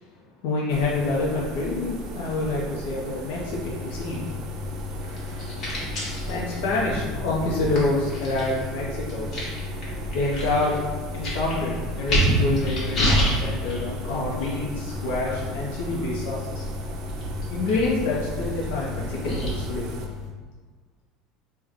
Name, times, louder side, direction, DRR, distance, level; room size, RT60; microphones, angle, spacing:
voice 1, 0.4-4.3 6.3-9.3 10.1-10.8 11.1-16.7 17.5-19.9, left 2 dB, 85° left, -4 dB, 0.5 m, -27 dB
sound 1, 0.7-20.1, right 2 dB, 50° right, 0.4 m, -37 dB
sound 2, 3.4-20.3, left 1 dB, 40° left, 1.1 m, -30 dB
3.4 x 2.1 x 3.5 m, 1.4 s
cardioid pair, 145°, 0 cm